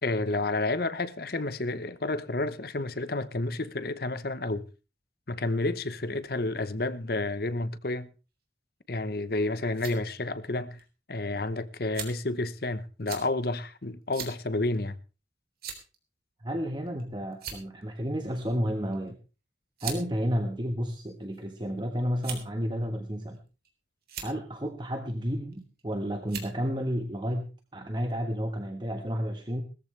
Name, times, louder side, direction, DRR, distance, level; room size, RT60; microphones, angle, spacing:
voice 1, 0.0-4.6 5.3-8.1 8.9-10.8 11.1-15.0, left 2 dB, 55° left, 1.0 m, -30 dB
sound 1, 9.4-10.0 10.8-10.9 11.9-12.3 13.1-13.3 14.1-14.4 14.7-14.9 15.6-16.0 16.9-17.0 17.3-17.8 18.9-19.1 19.8-20.0 20.9-21.4 22.2-22.6 23.3-23.7 24.0-24.3 25.5-25.8 26.3-26.5, right 7 dB, 55° right, 3.6 m, -39 dB
voice 2, 16.4-19.1 19.8-23.4 24.2-27.5 27.7-29.6, equal, 25° right, 1.3 m, -31 dB
19.5 x 14.0 x 3.3 m
head